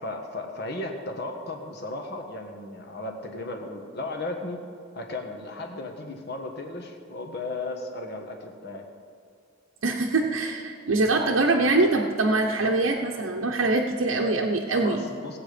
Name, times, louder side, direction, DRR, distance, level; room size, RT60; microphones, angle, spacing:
voice 1, 0.0-4.6 4.9-8.9 14.7-15.4, left 2 dB, 50° left, 4 dB, 1.5 m, -35 dB
voice 2, 9.8-15.1, right 2 dB, 75° right, -1 dB, 0.9 m, -23 dB
18.5 x 8.0 x 5.1 m, 2.4 s
head